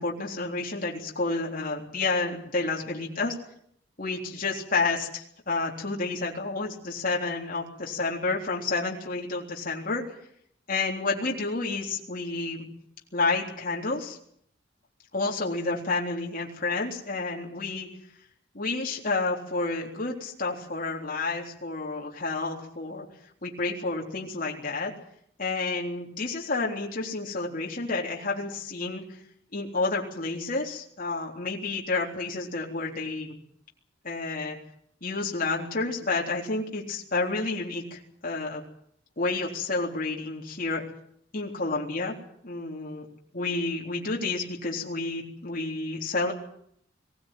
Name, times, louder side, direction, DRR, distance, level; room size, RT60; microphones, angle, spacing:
voice 1, 0.0-3.3 4.0-10.0 10.7-12.7 13.1-14.2 15.1-17.9 18.5-23.1 23.4-24.9 25.4-29.2 29.5-33.3 34.0-34.6 35.0-38.6 39.2-40.8 41.3-42.1 42.5-43.1 43.3-46.3, left 3 dB, 45° left, -1 dB, 3.7 m, -30 dB
22.5 x 17.0 x 9.2 m, 0.69 s
head